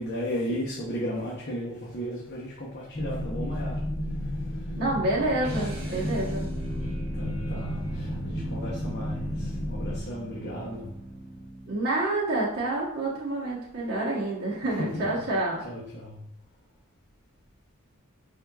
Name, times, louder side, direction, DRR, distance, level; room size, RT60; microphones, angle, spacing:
voice 1, 0.0-3.8 4.2-4.8 5.6-6.1 7.1-10.9 14.6-15.2 15.6-16.2, equal, 50° left, -5 dB, 0.8 m, -35 dB
sound 1, 2.9-10.0, left 1 dB, 20° left, 0.4 m, -32 dB
voice 2, 4.8-6.5 11.7-15.6, right 2 dB, 50° right, -6 dB, 1.0 m, -28 dB
sound 2, 5.4-11.8, right 2 dB, 75° right, 1.2 m, -39 dB
4.4 x 3.7 x 2.3 m, 0.72 s
head